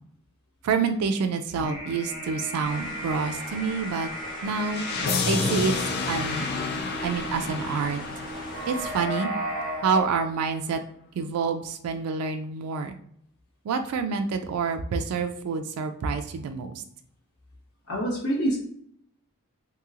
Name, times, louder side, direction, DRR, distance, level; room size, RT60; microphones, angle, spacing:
voice 1, 0.6-4.1 4.4-5.7 6.1-6.5 7.0-8.0 8.7-9.3 9.8-10.8 11.1-13.0 13.6-16.8, right 5 dB, 85° right, 6 dB, 0.3 m, -27 dB
sound 1, 1.5-10.0, right 1 dB, 40° right, 1.0 m, -35 dB
sound 2, 2.6-9.0, left 1 dB, 20° left, 1.3 m, -42 dB
sound 3, 4.7-9.6, left 5 dB, 45° left, 0.3 m, -30 dB
voice 2, 17.9-18.6, right 1 dB, 85° left, -5 dB, 1.0 m, -26 dB
2.9 x 2.9 x 2.4 m, 0.67 s
head